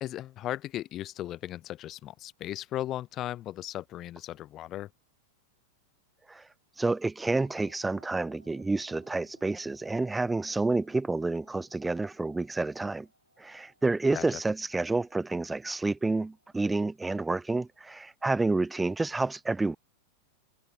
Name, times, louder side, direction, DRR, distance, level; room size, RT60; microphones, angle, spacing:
voice 1, 0.0-4.9 14.1-14.4, left 13 dB, 35° left, 0.9 m, -36 dB
voice 2, 6.8-13.1 13.4-19.8, right 3 dB, 10° right, 0.8 m, -29 dB
sound 1, 7.3-18.0, right 1 dB, 90° right, 3.8 m, -63 dB
figure-of-eight pair, 90°, 0 cm